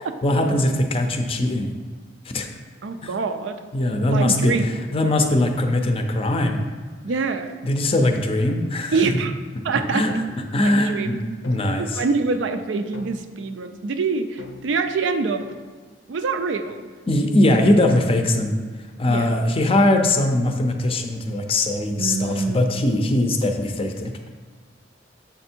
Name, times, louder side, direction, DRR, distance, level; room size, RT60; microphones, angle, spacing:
voice 1, 0.2-1.7 2.3-2.5 3.0-3.1 3.7-6.6 7.6-9.2 9.9-10.1 10.5-12.0 17.1-18.5 19.0-24.1, left 1 dB, 30° left, 5 dB, 0.5 m, -21 dB
voice 2, 2.8-3.6 4.1-4.6 7.0-7.5 8.9-9.3 9.6-10.2 10.6-11.1 11.8-15.4 16.1-16.8 19.1-19.4 22.0-22.6, right 4 dB, 70° right, 8 dB, 0.4 m, -25 dB
sound 1, 10.1-10.4 11.4-12.0 12.9-13.5 14.4-14.9 15.4-15.7, left 3 dB, 90° left, 0.6 m, -42 dB
7.1 x 3.4 x 4.4 m, 1.5 s
head